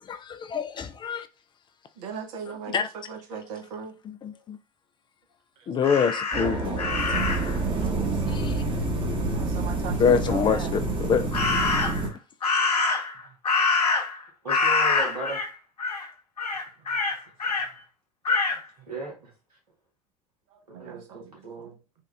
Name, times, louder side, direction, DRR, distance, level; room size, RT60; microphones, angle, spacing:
voice 1, 0.1-1.3 2.7-2.8 4.2-4.6 5.7-6.8 8.3-8.6 10.0-11.2, left 6 dB, 25° left, 0.3 m, -25 dB
voice 2, 2.0-3.9 5.6-5.7 7.8-8.8 9.3-10.8 12.0-12.2 13.1-13.4 16.8-17.0 17.3-17.6 18.5-18.9 20.5-21.7, right 7 dB, 60° right, 0.8 m, -40 dB
Crow, 5.8-7.6 11.3-12.1 12.4-14.2 14.5-15.5 15.8-16.1 16.4-17.7 18.2-18.6, left 4 dB, 85° left, 0.7 m, -25 dB
sound 1, 6.3-12.1, right 2 dB, 25° right, 1.0 m, -28 dB
voice 3, 14.4-15.4 18.9-19.3 20.7-21.8, right 1 dB, 80° right, 1.5 m, -36 dB
3.6 x 2.4 x 3.2 m
figure-of-eight pair, 75°, 20 cm